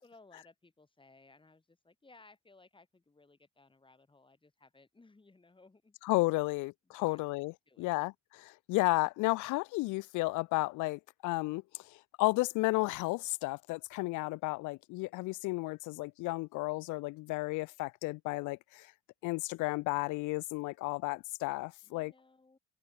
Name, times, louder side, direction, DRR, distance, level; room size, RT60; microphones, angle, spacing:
voice 1, 0.0-6.0 6.4-6.5 6.8-8.1 21.8-22.6, left 3 dB, 15° left, 5.6 m, -61 dB
voice 2, 6.1-8.1 8.5-18.9 19.2-22.1, left 22 dB, 90° left, 0.5 m, -33 dB
cardioid pair, 110°, 29 cm